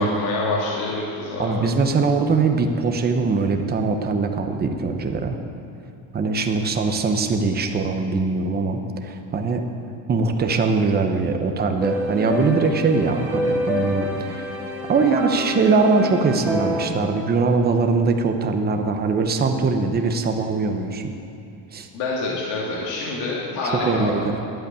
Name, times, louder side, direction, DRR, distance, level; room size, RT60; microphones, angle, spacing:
voice 1, 0.0-1.7 21.9-24.1, left 2 dB, 80° left, -4 dB, 2.2 m, -26 dB
voice 2, 1.4-5.4 6.1-9.6 10.1-14.5 14.9-21.1 21.7-21.9 23.7-24.4, right 4 dB, 20° right, 5 dB, 0.8 m, -21 dB
sound 1, 11.8-16.9, left 1 dB, 5° right, 1.4 m, -27 dB
11.0 x 8.4 x 8.9 m, 2.6 s
cardioid pair, 160°, 45 cm